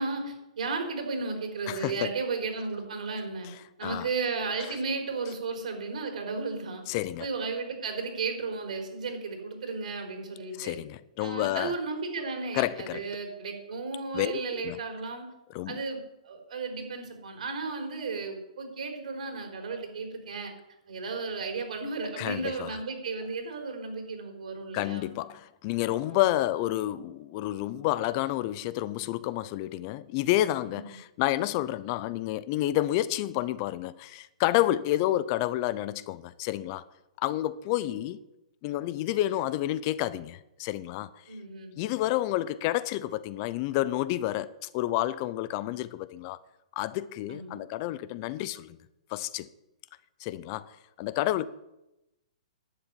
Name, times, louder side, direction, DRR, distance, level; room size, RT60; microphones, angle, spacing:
voice 1, 0.0-3.5 3.8-6.8 7.2-10.8 11.2-15.3 15.7-20.5 20.9-25.1 26.1-26.3 30.7-30.9 37.8-38.0 41.3-41.7 47.3-47.6, right 4 dB, 75° right, 4.2 m, -34 dB
voice 2, 1.7-2.1 3.8-4.1 4.6-4.8 6.9-7.3 10.6-11.8 12.5-13.0 14.1-14.8 15.5-15.8 22.2-22.8 24.7-36.8 37.2-38.2 38.6-41.2 41.8-46.4 46.8-48.8 49.1-49.5 50.2-50.7 51.0-51.5, left 15 dB, 30° left, 0.5 m, -29 dB
11.0 x 7.1 x 9.6 m
hypercardioid pair, 160°, 4 cm